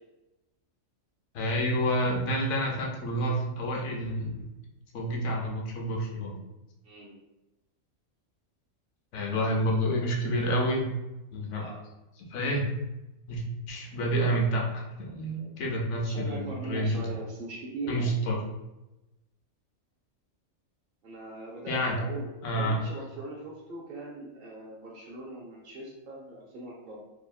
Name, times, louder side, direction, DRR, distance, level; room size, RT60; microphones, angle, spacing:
voice 1, 1.3-4.5 4.9-6.4 9.1-10.9 11.3-11.7 12.3-12.6 13.3-13.4 13.7-17.1 17.9-18.4 21.7-22.0 22.4-22.8, equal, 70° left, 0 dB, 0.9 m, -29 dB
voice 2, 6.8-7.1 11.5-11.8 16.0-18.1 21.0-27.0, right 2 dB, 60° right, -4 dB, 0.6 m, -40 dB
2.7 x 2.5 x 2.2 m, 0.98 s
omnidirectional pair, 1.4 m